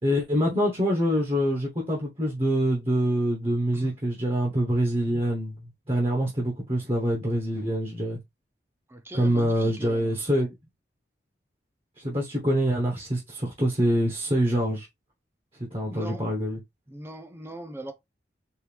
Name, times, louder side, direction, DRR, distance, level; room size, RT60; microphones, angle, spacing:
voice 1, 0.0-8.2 9.1-10.5 12.0-14.9 15.7-16.6, equal, 30° right, 1.1 m, -25 dB
voice 2, 8.9-10.2 15.9-16.2 16.9-17.9, right 1 dB, 15° right, 0.6 m, -40 dB
4.6 x 2.6 x 3.4 m
head